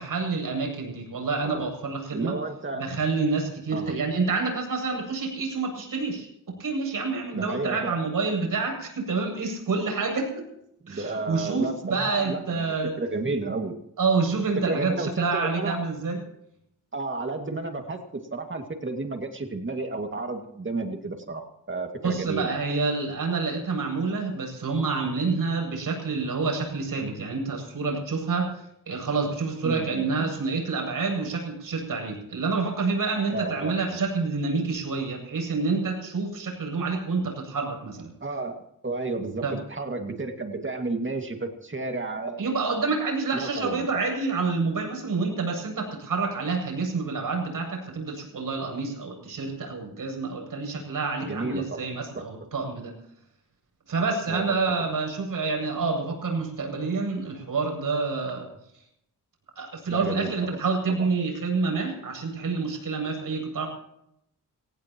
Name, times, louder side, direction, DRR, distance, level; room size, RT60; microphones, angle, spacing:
voice 1, 0.0-2.4 2.7-6.3 6.6-10.4 10.9-13.0 14.0-16.2 22.0-38.1 39.4-39.5 42.4-52.9 53.9-58.5 59.6-63.7, right 4 dB, 80° right, 2 dB, 8.0 m, -28 dB
voice 2, 2.1-2.8 3.7-3.9 7.3-8.0 10.8-13.7 14.7-15.8 16.9-18.1 18.3-22.7 29.6-30.3 33.3-33.8 38.2-42.5 43.3-44.0 51.2-51.8 52.1-52.2 54.3-54.4 54.8-54.9 59.9-60.6 61.0-61.1, right 3 dB, 35° right, 4 dB, 2.2 m, -32 dB
26.0 x 17.5 x 3.0 m, 0.76 s
wide cardioid pair, 115°, 33 cm